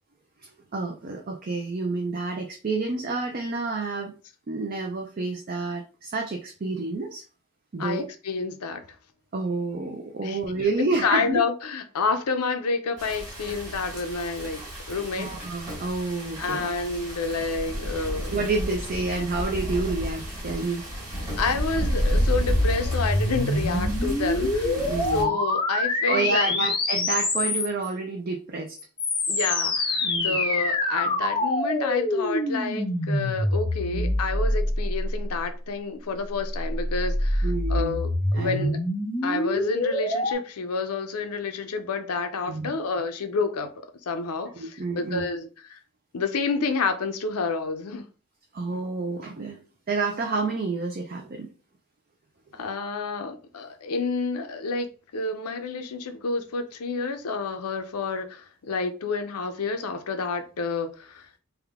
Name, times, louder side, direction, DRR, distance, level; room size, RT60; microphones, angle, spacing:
voice 1, 0.4-4.1 4.5-7.2 7.7-8.1 9.3-11.4 15.2-16.7 18.3-20.9 24.6-25.4 26.1-28.8 30.0-30.4 33.9-34.2 37.4-38.0 38.3-38.8 42.5-42.7 44.6-45.2 48.5-49.6 49.9-51.5, right 3 dB, 40° right, 0.4 m, -29 dB
voice 2, 7.8-8.8 10.2-14.6 14.9-15.3 16.4-18.3 21.4-24.7 25.1-26.6 29.3-38.8 39.2-43.7 44.1-45.8 46.1-48.1 52.5-54.9 55.1-61.4, left 4 dB, 85° left, 0.6 m, -29 dB
sound 1, 13.0-25.2, equal, 15° right, 1.5 m, -32 dB
sound 2, 21.8-27.9 28.8-35.4 36.4-40.3, left 1 dB, 20° left, 0.6 m, -26 dB
3.5 x 2.2 x 3.5 m
head